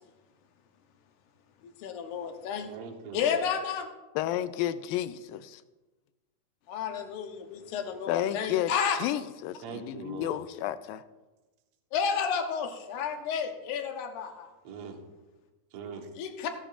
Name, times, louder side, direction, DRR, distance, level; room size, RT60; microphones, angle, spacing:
voice 1, 1.6-2.7 3.1-3.9 6.7-9.0 11.9-14.5 16.2-16.5, left 7 dB, 70° left, 5 dB, 2.3 m, -31 dB
voice 2, 2.7-3.4 9.6-10.4 14.6-15.0 15.7-16.1, right 6 dB, 60° right, 3 dB, 1.9 m, -41 dB
voice 3, 4.2-5.6 8.1-8.7 9.0-11.0, left 12 dB, 85° left, 12 dB, 2.3 m, -31 dB
16.0 x 12.0 x 2.5 m, 1.1 s
omnidirectional pair, 4.0 m